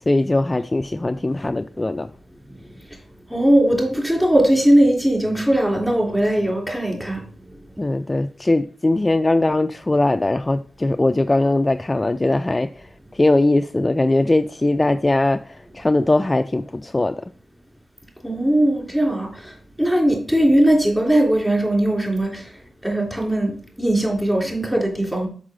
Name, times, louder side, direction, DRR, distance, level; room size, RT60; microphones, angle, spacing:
voice 1, 0.1-2.1 7.8-17.2, left 2 dB, 25° left, 0.3 m, -20 dB
voice 2, 3.3-7.2 18.2-19.5 19.8-22.5 22.8-25.3, right 1 dB, 5° right, 3.3 m, -19 dB
6.2 x 5.5 x 3.7 m
cardioid pair, 50°, 0 cm